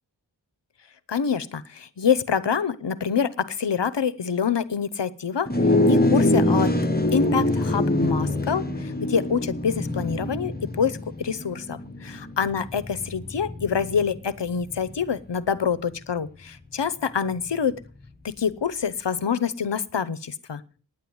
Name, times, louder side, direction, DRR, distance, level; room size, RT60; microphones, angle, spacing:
voice 1, 1.1-5.5 5.9-6.7 7.1-10.5 10.8-17.8 18.2-20.6, left 6 dB, 70° left, 16 dB, 0.9 m, -26 dB
sound 1, 5.5-15.0, left 1 dB, 20° left, 1.5 m, -24 dB
10.0 x 8.8 x 7.7 m, 0.40 s
wide cardioid pair, 55°, 44 cm